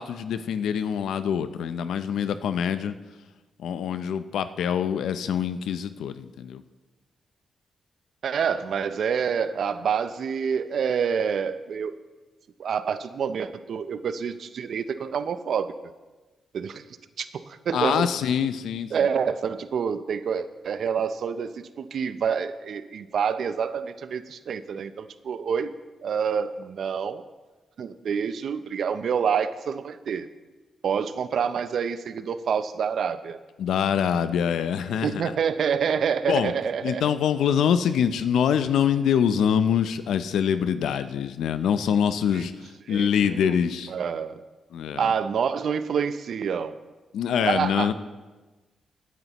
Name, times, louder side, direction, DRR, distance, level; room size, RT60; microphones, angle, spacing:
voice 1, 0.0-2.9 3.6-6.6 17.7-18.9 33.6-35.2 36.3-36.5 36.8-43.9 44.7-45.1 47.1-47.9, left 8 dB, 85° left, 12 dB, 0.5 m, -25 dB
voice 2, 8.2-12.0 12.6-15.7 16.5-16.8 17.2-18.1 18.9-25.7 26.0-27.2 27.8-30.3 30.8-33.4 35.0-37.0 42.3-42.5 42.9-43.6 43.9-44.4 45.0-46.8 47.4-47.9, right 7 dB, 70° right, 12 dB, 0.6 m, -27 dB
18.0 x 9.5 x 3.0 m, 1.2 s
cardioid pair, 65°, 0 cm